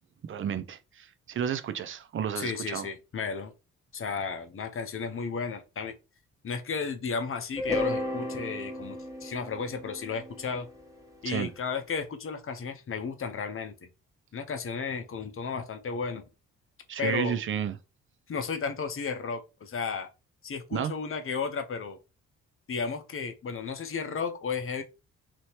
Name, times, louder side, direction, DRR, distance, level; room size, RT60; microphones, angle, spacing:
voice 1, 0.3-2.9 11.3-11.5 16.9-17.8 20.7-20.9, right 8 dB, 35° right, 0.5 m, -31 dB
voice 2, 2.3-3.5 3.9-5.9 6.4-10.7 11.2-13.9 14.3-16.2 17.0-17.4 18.3-20.1 20.4-22.0 22.7-24.8, left 5 dB, 35° left, 0.8 m, -33 dB
sound 1, 7.6-11.7, left 1 dB, 10° right, 1.3 m, -34 dB
2.9 x 2.7 x 3.1 m
hypercardioid pair, 40°, 39 cm